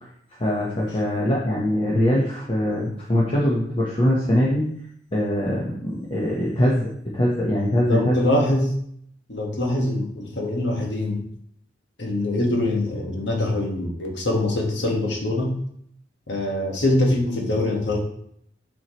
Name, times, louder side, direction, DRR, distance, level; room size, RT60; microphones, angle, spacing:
voice 1, 0.4-4.7 5.1-8.2, equal, 30° left, -4 dB, 0.9 m, -22 dB
voice 2, 7.8-8.7 9.3-11.2 12.0-15.6 16.3-18.0, left 1 dB, 80° left, 0 dB, 1.4 m, -23 dB
7.2 x 4.4 x 3.0 m, 0.69 s
head